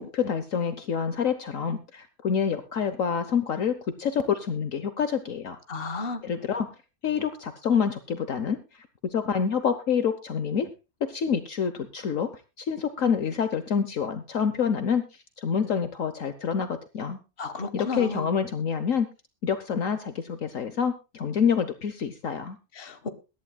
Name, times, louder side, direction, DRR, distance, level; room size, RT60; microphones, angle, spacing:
voice 1, 0.0-5.6 6.2-6.7 7.0-8.9 9.1-10.7 11.0-15.0 15.4-16.7 16.9-17.2 17.7-19.1 19.4-22.6, left 7 dB, 60° left, 10 dB, 1.3 m, -27 dB
voice 2, 5.7-6.3 17.4-18.3 22.8-23.1, left 3 dB, 40° left, 10 dB, 1.5 m, -33 dB
22.0 x 11.5 x 2.2 m, 0.29 s
omnidirectional pair, 1.6 m